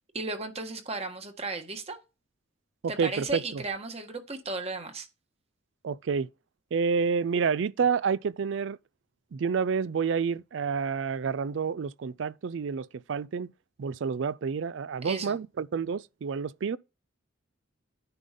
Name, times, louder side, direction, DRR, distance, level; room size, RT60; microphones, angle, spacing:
voice 1, 0.1-2.0 2.9-5.1 15.0-15.4, right 3 dB, 30° right, 1.5 m, -35 dB
voice 2, 2.8-3.6 5.8-6.3 6.7-8.8 9.3-13.5 13.8-16.8, right 6 dB, 65° right, 0.4 m, -29 dB
9.9 x 3.8 x 5.2 m
head